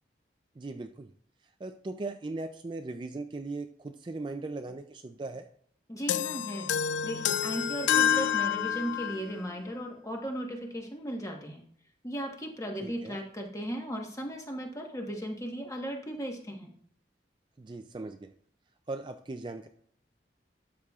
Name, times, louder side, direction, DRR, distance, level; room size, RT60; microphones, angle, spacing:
voice 1, 0.6-1.1 1.6-5.5 12.8-13.2 17.6-18.3 18.9-19.7, right 3 dB, 25° right, 7 dB, 0.3 m, -38 dB
voice 2, 5.9-6.7 7.0-11.6 12.0-16.7, equal, 20° left, 1 dB, 1.2 m, -36 dB
sound 1, 6.1-9.3, left 9 dB, 85° left, 0.4 m, -28 dB
12.0 x 6.9 x 2.4 m, 0.63 s
head